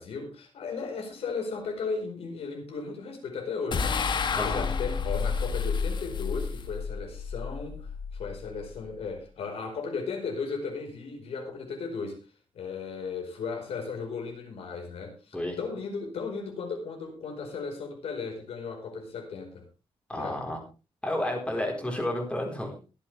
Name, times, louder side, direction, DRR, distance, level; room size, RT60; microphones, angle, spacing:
voice 1, 0.0-12.2 12.5-19.6 20.1-20.4 21.5-21.6, left 5 dB, 85° left, 2 dB, 4.8 m, -36 dB
sound 1, 3.7-9.1, left 5 dB, 50° left, 1.4 m, -31 dB
voice 2, 4.3-4.7 15.3-15.6 20.1-20.6 21.0-22.7, left 1 dB, 10° left, 1 dB, 4.3 m, -31 dB
23.0 x 8.3 x 3.5 m, 0.31 s
wide cardioid pair, 150°, 10 cm